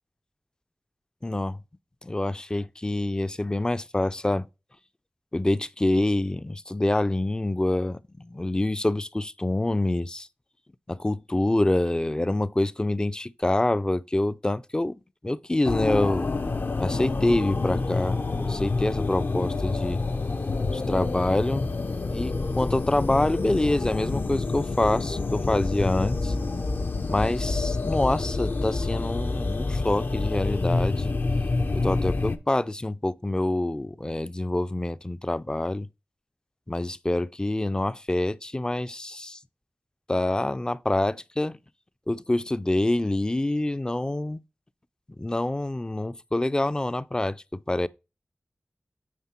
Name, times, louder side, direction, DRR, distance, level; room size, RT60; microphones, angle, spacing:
voice 1, 1.2-1.6 2.0-4.5 5.3-10.3 10.9-16.3 16.8-20.0 20.7-21.7 22.1-26.3 27.1-31.1 31.7-35.9 36.7-39.4 40.1-41.6 42.1-44.4 45.2-47.9, left 1 dB, 20° left, 0.4 m, -26 dB
sound 1, 15.6-32.4, left 3 dB, 60° left, 0.7 m, -28 dB
9.4 x 3.6 x 4.4 m
wide cardioid pair, 70°, 4 cm